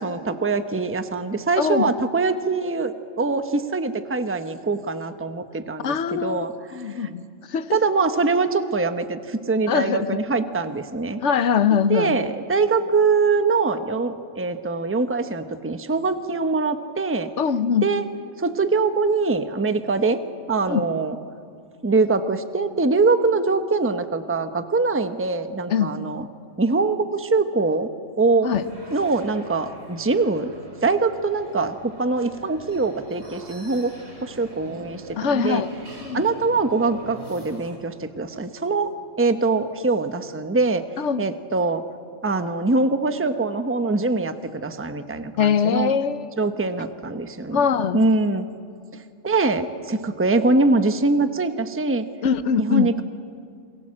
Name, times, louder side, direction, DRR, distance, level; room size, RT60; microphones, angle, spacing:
voice 1, 0.0-7.1 7.7-11.2 11.9-17.3 17.8-18.1 18.4-20.2 20.5-21.2 21.8-26.3 26.6-27.9 28.2-28.5 28.9-30.5 30.8-33.9 34.2-35.6 36.1-40.8 41.2-41.8 42.2-46.0 46.4-47.7 47.9-48.5 49.2-52.1 52.6-53.0, right 3 dB, 10° right, 9 dB, 0.9 m, -23 dB
voice 2, 1.6-1.9 5.8-7.2 7.5-7.8 9.7-10.1 11.2-12.2 17.4-17.9 20.7-20.8 25.7-25.9 28.4-28.6 35.2-35.7 36.0-36.2 41.0-41.2 45.4-46.3 47.5-48.0 52.2-52.9, left 7 dB, 70° left, 13 dB, 1.2 m, -22 dB
Cafe ambience large room, 28.5-37.8, right 1 dB, 60° right, 4.7 m, -43 dB
28.5 x 22.0 x 7.7 m, 2.3 s
omnidirectional pair, 1.3 m